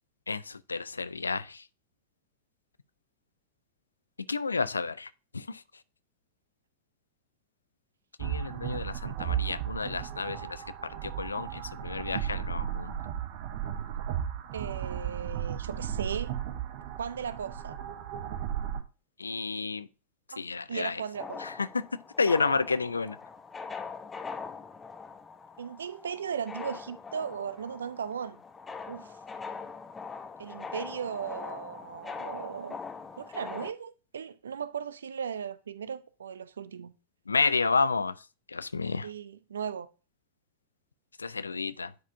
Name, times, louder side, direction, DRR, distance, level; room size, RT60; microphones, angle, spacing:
voice 1, 0.3-1.6 4.3-5.1 5.3-5.6 8.2-13.0 19.2-19.9 20.4-21.0 21.4-21.8 22.2-23.2 37.3-38.1 38.5-39.1 41.2-41.9, left 4 dB, 75° left, 0.3 m, -30 dB
sound 1, 8.2-18.8, right 10 dB, 50° right, 0.9 m, -35 dB
voice 2, 14.5-16.3 17.0-17.8 20.3-20.4 20.7-21.5 25.6-28.4 28.9-29.2 30.4-32.8 33.1-36.9 39.0-39.9, right 7 dB, 70° right, 0.5 m, -37 dB
sound 2, 21.1-33.7, left 5 dB, 15° left, 0.6 m, -42 dB
10.0 x 4.8 x 2.6 m
figure-of-eight pair, 90°, 0 cm